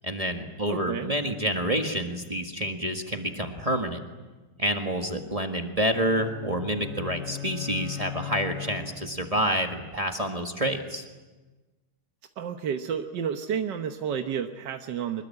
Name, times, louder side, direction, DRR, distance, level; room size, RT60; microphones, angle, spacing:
voice 1, 0.0-4.0 4.6-11.1, equal, 20° right, 4 dB, 1.7 m, -28 dB
voice 2, 0.7-1.1 12.4-15.3, right 8 dB, 85° right, 6 dB, 1.7 m, -31 dB
sound 1, 5.8-9.4, left 9 dB, 40° left, 4.7 m, -38 dB
25.5 x 21.0 x 9.8 m, 1.2 s
omnidirectional pair, 1.9 m